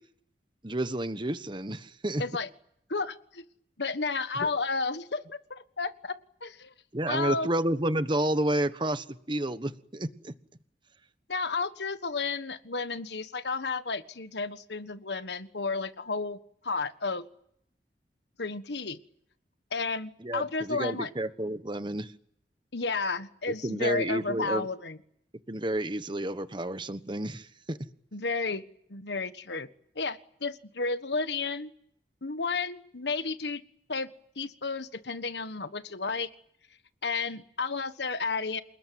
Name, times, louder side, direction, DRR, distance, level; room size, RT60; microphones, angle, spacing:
voice 1, 0.6-2.2 6.9-10.3 20.2-22.1 23.6-24.7 25.5-27.8, right 1 dB, 25° right, 11 dB, 1.3 m, -30 dB
voice 2, 2.9-3.4 3.8-6.7 7.1-7.5 11.3-16.4 16.6-17.3 18.4-19.0 19.7-21.1 22.7-25.0 28.1-28.6 28.9-29.7 29.9-31.7 32.2-33.6 33.9-36.3 37.0-38.6, left 4 dB, 75° left, 11 dB, 1.5 m, -32 dB
28.0 x 20.0 x 9.4 m, 0.68 s
head